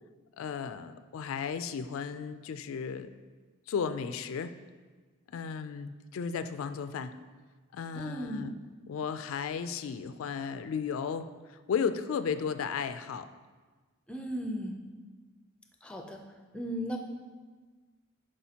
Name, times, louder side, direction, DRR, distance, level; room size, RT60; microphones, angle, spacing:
voice 1, 0.4-3.1 3.7-4.6 5.3-7.2 7.7-8.5 8.9-13.3, left 6 dB, 75° left, 11 dB, 0.3 m, -34 dB
voice 2, 7.9-8.5 14.1-14.8 15.8-16.2 16.5-17.0, equal, 5° left, 3 dB, 0.4 m, -36 dB
9.9 x 4.9 x 2.8 m, 1.4 s
head